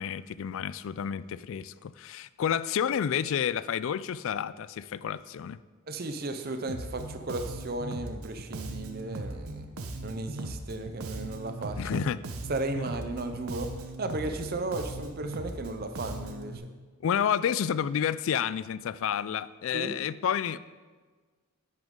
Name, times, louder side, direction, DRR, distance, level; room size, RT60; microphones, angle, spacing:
voice 1, 0.0-5.6 11.8-12.2 12.8-12.9 17.0-20.6, left 8 dB, 60° left, 17 dB, 0.3 m, -30 dB
voice 2, 5.9-9.7 10.0-12.0 12.5-13.7 14.0-16.6 19.7-19.9, right 2 dB, 45° right, 7 dB, 0.6 m, -35 dB
Bass guitar, 6.7-16.6, right 2 dB, 75° right, 0.9 m, -39 dB
10.5 x 9.2 x 3.7 m, 1.4 s
head